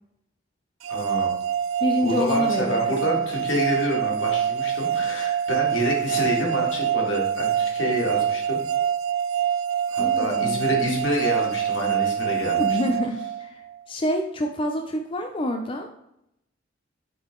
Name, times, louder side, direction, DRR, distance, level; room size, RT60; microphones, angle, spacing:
sound 1, 0.8-13.8, right 9 dB, 90° right, 0.3 m, -25 dB
voice 1, 0.9-1.3 2.0-8.6 9.9-12.6, equal, 75° left, -1 dB, 1.9 m, -27 dB
voice 2, 1.8-3.3 10.0-10.8 12.6-15.9, left 1 dB, 25° left, 4 dB, 0.4 m, -28 dB
7.1 x 3.9 x 3.7 m, 0.81 s
head